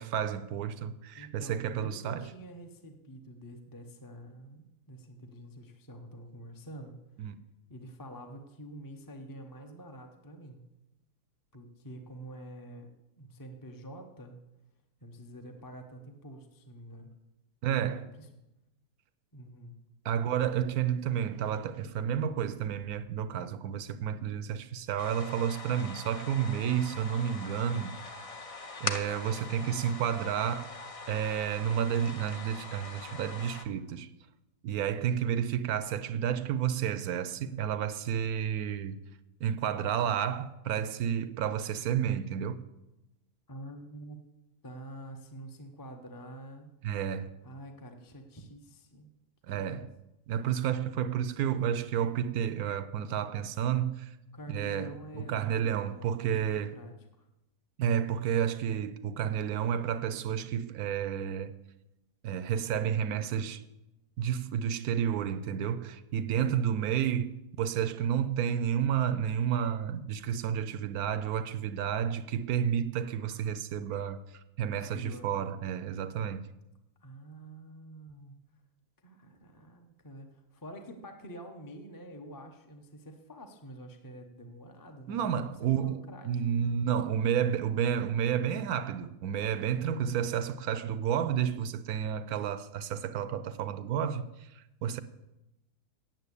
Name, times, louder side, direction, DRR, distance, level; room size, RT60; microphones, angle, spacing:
voice 1, 0.0-2.3 7.2-7.3 17.6-18.1 20.0-28.0 28.8-30.7 31.1-34.1 34.6-39.0 39.4-42.6 46.8-47.3 49.5-49.9 50.3-54.2 54.5-56.8 57.8-61.5 62.2-63.6 64.2-76.5 85.1-95.0, right 9 dB, 70° right, 1.0 m, -31 dB
voice 2, 1.1-7.0 7.7-10.6 11.5-12.9 13.2-14.4 15.0-17.1 17.7-18.3 19.3-19.8 43.5-44.2 44.6-46.7 47.4-49.1 49.5-49.9 54.3-57.3 74.7-75.3 77.0-78.3 79.0-86.7 89.8-90.2, right 1 dB, 20° left, 0.6 m, -47 dB
sound 1, 25.0-33.7, left 3 dB, 55° left, 0.3 m, -42 dB
9.0 x 7.3 x 8.3 m
omnidirectional pair, 1.7 m